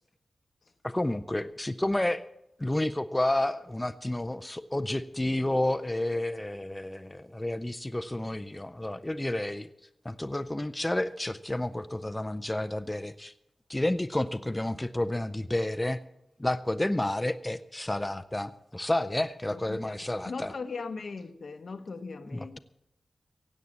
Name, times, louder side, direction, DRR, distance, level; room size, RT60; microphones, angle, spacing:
voice 1, 0.8-2.2 2.6-9.7 10.0-13.3 13.7-16.0 16.4-20.5 22.3-22.6, left 1 dB, 15° left, 9 dB, 0.5 m, -30 dB
voice 2, 19.5-22.6, left 4 dB, 70° left, 7 dB, 1.0 m, -39 dB
16.5 x 8.3 x 7.3 m, 0.85 s
wide cardioid pair, 70°, 0 cm